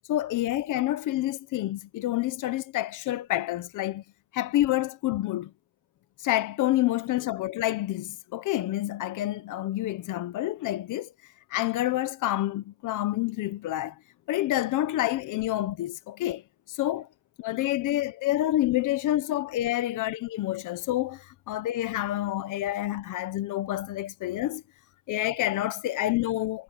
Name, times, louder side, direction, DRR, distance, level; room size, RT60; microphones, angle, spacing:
voice 1, 0.1-4.0 4.3-5.5 6.2-11.1 11.5-14.0 14.3-16.4 16.7-17.1 17.4-24.6 25.1-26.6, left 14 dB, 85° left, 1.3 m, -28 dB
cardioid pair, 90°, 30 cm